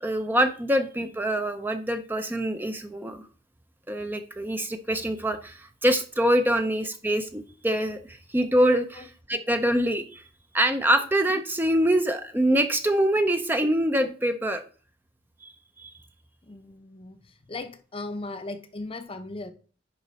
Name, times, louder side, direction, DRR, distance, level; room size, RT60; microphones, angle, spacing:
voice 1, 0.0-3.2 3.9-9.0 9.3-10.2 10.5-14.6 15.4-15.5 15.8-15.9, right 1 dB, 10° right, 0.5 m, -25 dB
voice 2, 16.4-19.5, left 2 dB, 30° left, 0.7 m, -38 dB
10.5 x 4.1 x 4.1 m
head